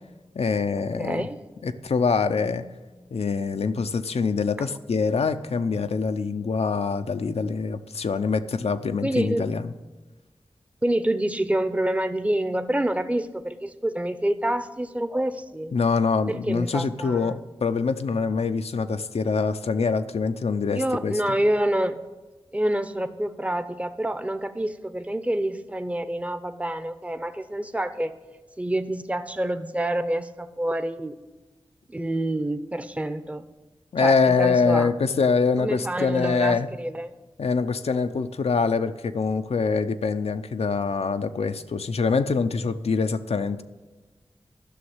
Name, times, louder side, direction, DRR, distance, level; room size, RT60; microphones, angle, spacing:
voice 1, 0.4-1.3 1.6-2.7 3.1-9.7 15.7-21.1 33.9-36.7 37.4-43.6, left 5 dB, 85° left, 9 dB, 0.6 m, -24 dB
voice 2, 1.0-1.4 4.6-4.7 9.0-9.5 10.8-15.7 16.3-17.4 20.7-22.0 22.5-28.1 28.6-31.2 31.9-33.4 34.0-34.9 35.6-37.2, right 1 dB, 15° right, 11 dB, 0.7 m, -27 dB
12.0 x 6.3 x 9.5 m, 1.2 s
wide cardioid pair, 70°, 10 cm